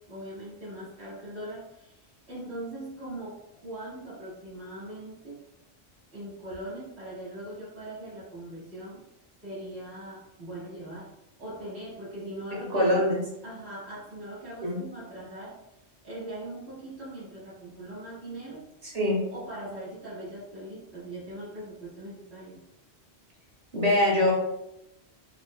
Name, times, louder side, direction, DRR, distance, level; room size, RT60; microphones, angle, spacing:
voice 1, 0.1-2.0 2.3-5.4 6.1-9.0 9.4-11.1 11.4-13.0 13.4-15.6 16.0-18.6 19.3-22.6, right 1 dB, 80° right, -8 dB, 1.6 m, -40 dB
voice 2, 12.7-13.2 14.6-14.8 18.9-19.2 23.7-24.3, left 1 dB, 40° right, -3 dB, 0.9 m, -23 dB
4.0 x 2.1 x 2.2 m, 0.87 s
omnidirectional pair, 1.1 m